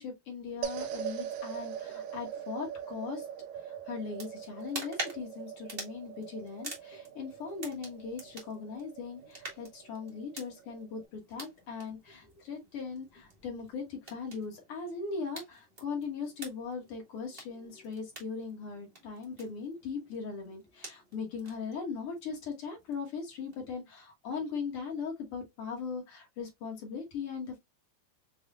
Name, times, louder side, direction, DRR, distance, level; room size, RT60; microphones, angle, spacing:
voice 1, 0.0-3.3 3.5-27.6, left 5 dB, 55° left, 1.7 m, -39 dB
sound 1, 0.6-11.1, right 9 dB, 90° right, 2.3 m, -42 dB
sound 2, 4.1-23.7, right 2 dB, 45° right, 0.6 m, -48 dB
6.7 x 2.3 x 2.4 m
omnidirectional pair, 3.9 m